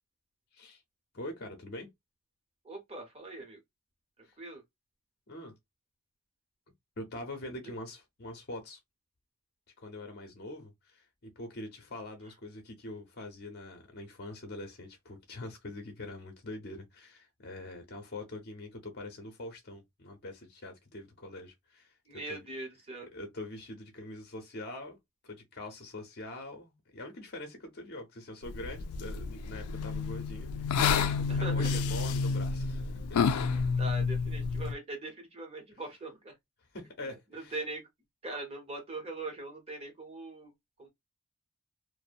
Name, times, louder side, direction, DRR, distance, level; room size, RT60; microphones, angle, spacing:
voice 1, 1.1-1.9 4.2-4.3 5.3-5.5 7.0-8.8 9.8-21.9 22.3-22.5 23.1-25.0 25.2-33.2 35.7-35.8 36.7-37.6 38.3-38.4, left 1 dB, 45° left, 0.7 m, -44 dB
voice 2, 2.6-3.6 4.4-4.6 22.1-23.1 31.3-31.8 33.5-36.3 37.3-37.8 38.2-40.5 40.8-40.9, right 2 dB, 25° right, 1.0 m, -41 dB
sound 1, 28.4-34.7, left 5 dB, 90° left, 0.4 m, -30 dB
2.7 x 2.1 x 2.4 m
head